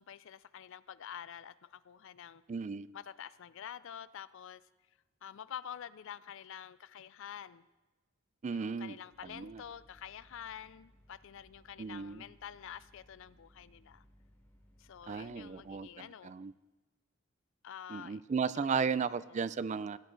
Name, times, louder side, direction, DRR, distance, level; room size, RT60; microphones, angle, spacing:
voice 1, 0.0-2.4 2.9-4.6 5.2-7.7 8.5-14.0 14.8-16.3 17.6-19.5, left 9 dB, 65° left, 17 dB, 0.4 m, -48 dB
voice 2, 2.5-2.9 8.4-9.0 9.3-9.6 11.8-12.2 15.1-16.5 17.9-20.0, right 5 dB, 35° right, 17 dB, 0.3 m, -35 dB
sound 1, 9.1-15.8, equal, 10° left, 2.1 m, -64 dB
18.0 x 10.0 x 3.9 m, 1.1 s
head